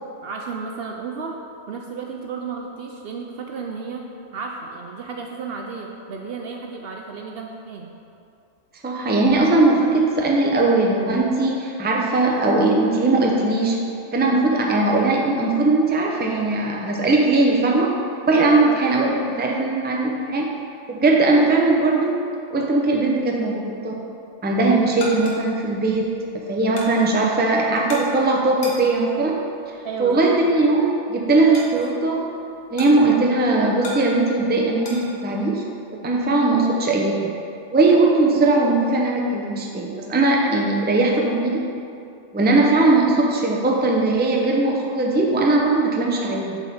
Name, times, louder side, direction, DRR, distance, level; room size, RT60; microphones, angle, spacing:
voice 1, 0.2-1.4 1.7-4.0 4.3-7.9 18.3-18.7 29.8-30.2, right 5 dB, 65° right, 1 dB, 0.7 m, -33 dB
voice 2, 8.8-13.8 14.1-17.9 18.3-20.5 20.9-22.1 22.5-23.9 24.4-29.4 30.0-32.3 32.7-35.6 36.0-37.3 37.7-41.6 42.3-46.6, right 2 dB, 10° right, -2 dB, 0.5 m, -19 dB
sound 1, 24.5-35.1, left 1 dB, 65° left, 1.3 m, -39 dB
7.3 x 4.8 x 4.2 m, 2.6 s
omnidirectional pair, 1.3 m